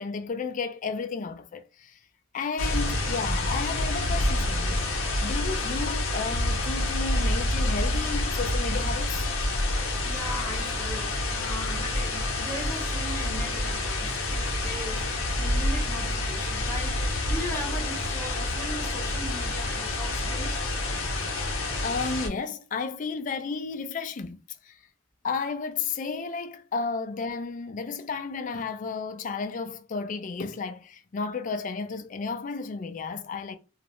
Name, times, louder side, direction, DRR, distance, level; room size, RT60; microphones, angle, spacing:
voice 1, 0.0-2.0 2.3-4.8 5.2-9.3 21.8-24.4 24.6-24.8 25.2-33.6, left 4 dB, 40° left, 0.3 m, -33 dB
sound 1, 2.6-22.3, left 2 dB, 80° left, 0.7 m, -28 dB
voice 2, 9.7-20.6, equal, 15° left, 0.7 m, -38 dB
2.3 x 2.0 x 2.9 m
head